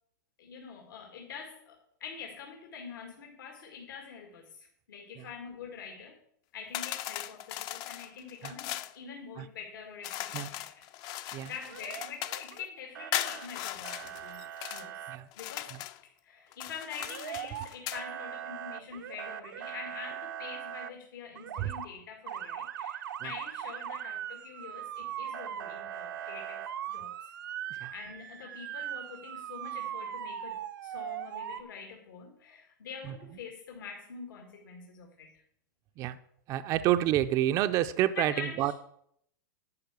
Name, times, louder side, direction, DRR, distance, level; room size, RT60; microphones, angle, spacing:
voice 1, 0.4-6.2 6.5-10.7 11.1-15.0 15.4-15.7 16.0-26.6 26.9-27.3 27.7-35.3 38.2-38.7, left 6 dB, 80° left, 2 dB, 2.0 m, -45 dB
sound 1, 6.7-8.9 10.0-12.6 13.1-14.9 15.3-16.0 16.5-18.0, left 13 dB, 35° left, 0.5 m, -38 dB
Motor vehicle (road) / Siren, 11.7-12.6 12.9-13.5 13.8-15.2 17.0-17.7 17.9-20.9 21.3-21.9 22.3-31.6, right 10 dB, 85° right, 0.7 m, -40 dB
voice 2, 36.5-38.7, right 13 dB, 30° right, 11 dB, 0.4 m, -28 dB
10.5 x 4.8 x 8.0 m, 0.70 s
hypercardioid pair, 140°, 11 cm